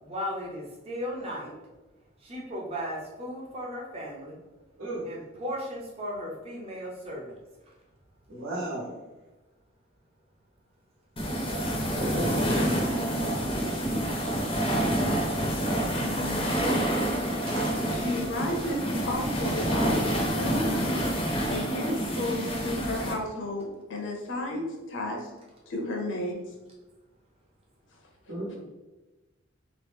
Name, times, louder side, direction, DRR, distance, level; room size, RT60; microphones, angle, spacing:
voice 1, 0.0-1.5 2.2-4.4 5.0-7.3 13.7-13.8, equal, 30° right, -3 dB, 0.7 m, -36 dB
voice 2, 8.3-8.9 11.9-12.9 17.4-17.6 21.5-21.6 28.3-28.6, right 1 dB, 80° right, -6 dB, 1.2 m, -34 dB
sound 1, 11.2-23.1, right 1 dB, 25° left, 0.6 m, -28 dB
voice 3, 12.6-13.4 16.0-16.7 17.9-21.0 21.5-25.3 25.7-26.4, left 1 dB, 70° left, 1 dB, 0.7 m, -33 dB
3.0 x 2.4 x 3.5 m, 1.1 s
head